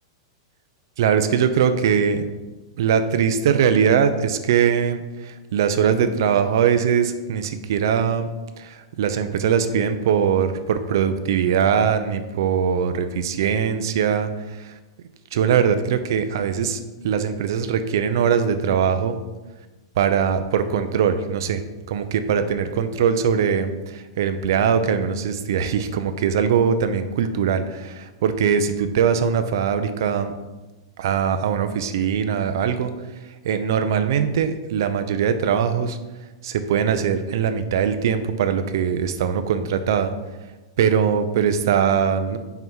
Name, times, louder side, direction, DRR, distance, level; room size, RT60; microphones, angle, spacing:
voice 1, 1.0-2.2 2.8-8.3 8.6-14.7 15.3-19.2 20.0-21.6 21.9-30.3 31.0-32.9 33.4-36.0 36.4-40.1 40.8-42.4, right 7 dB, 55° right, 9 dB, 0.6 m, -21 dB
5.8 x 4.6 x 5.6 m, 1.2 s
supercardioid pair, 175°, 3 cm